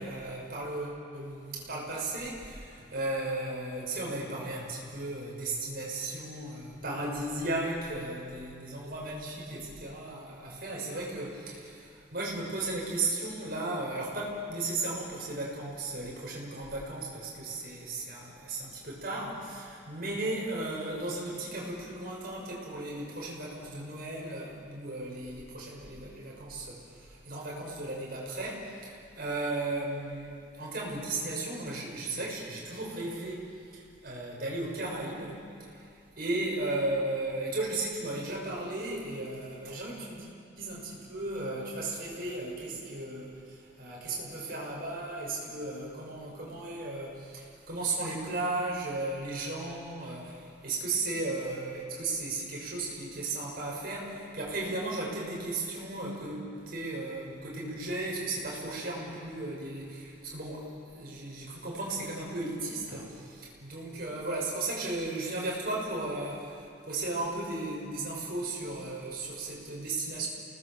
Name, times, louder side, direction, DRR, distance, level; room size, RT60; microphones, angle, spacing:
voice 1, 0.0-40.3 40.6-70.3, right 2 dB, 50° right, -3 dB, 6.8 m, -35 dB
30.0 x 20.0 x 7.5 m, 2.5 s
head